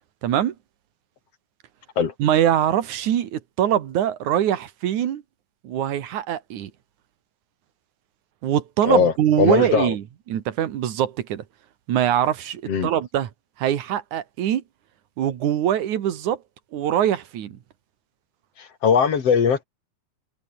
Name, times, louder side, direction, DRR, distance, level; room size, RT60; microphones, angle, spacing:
voice 1, 0.2-0.6 2.2-5.2 5.6-6.7 8.4-11.4 11.9-13.3 13.6-14.6 15.2-16.4 16.7-17.6, right 10 dB, 85° right, 3.0 m, -23 dB
voice 2, 8.8-9.9 12.7-12.9 18.6-19.6, left 6 dB, 55° left, 3.3 m, -20 dB
omnidirectional pair, 3.4 m